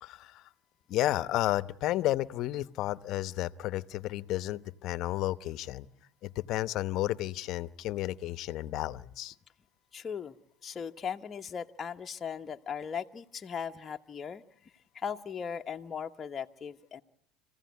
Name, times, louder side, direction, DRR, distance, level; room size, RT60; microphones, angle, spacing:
voice 1, 0.0-0.4 0.9-5.9 6.2-9.3, left 15 dB, 55° left, 15 dB, 0.9 m, -32 dB
voice 2, 9.9-10.3 10.6-14.4 14.9-17.0, left 7 dB, 30° left, 4 dB, 1.0 m, -38 dB
26.5 x 16.0 x 9.4 m, 0.72 s
supercardioid pair, 115°, 0 cm